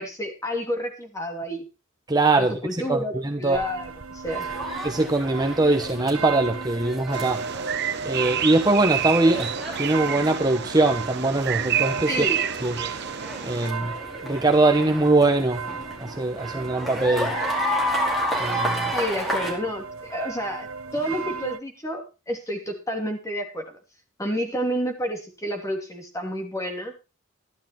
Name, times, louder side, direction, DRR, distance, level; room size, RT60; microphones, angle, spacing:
voice 1, 0.0-1.6 2.4-3.1 3.4-4.4 12.1-12.5 18.9-20.7 20.9-23.8 24.2-26.9, equal, 15° left, 4 dB, 2.8 m, -30 dB
voice 2, 2.1-3.6 4.8-7.4 8.0-9.5 9.8-12.3 12.6-12.8 13.4-13.9 14.2-15.6 16.0-17.3 18.4-18.9, right 2 dB, 20° right, 4 dB, 1.1 m, -22 dB
sound 1, 3.5-21.6, right 5 dB, 85° right, 1.1 m, -36 dB
sound 2, 4.3-19.5, equal, ahead, 4.6 m, -32 dB
Bird vocalization bird call bird song, 7.1-13.7, right 9 dB, 55° right, 0.9 m, -29 dB
13.0 x 11.5 x 4.4 m, 0.29 s
head